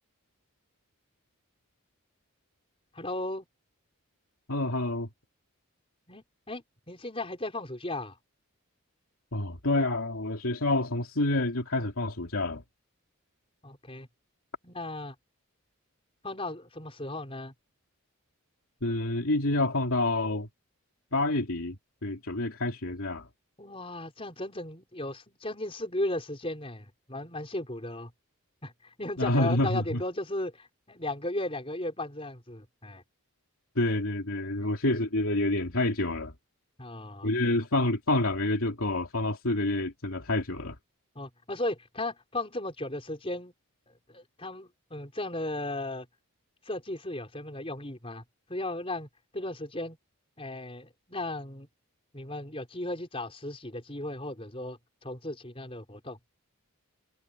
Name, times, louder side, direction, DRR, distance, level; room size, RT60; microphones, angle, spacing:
voice 1, 2.9-3.4 6.1-8.2 13.6-14.1 14.6-15.1 16.2-17.5 23.6-28.1 28.6-33.0 34.6-34.7 36.8-37.3 41.1-43.5 43.9-46.1 46.6-48.2 48.5-49.1 49.3-50.0 50.4-51.7 52.1-56.2, left 1 dB, 25° left, 5.0 m, -36 dB
voice 2, 4.5-5.1 9.3-12.6 18.8-20.5 21.1-21.8 22.0-23.3 29.2-30.0 33.8-36.3 37.2-40.8, left 2 dB, 70° left, 2.9 m, -28 dB
head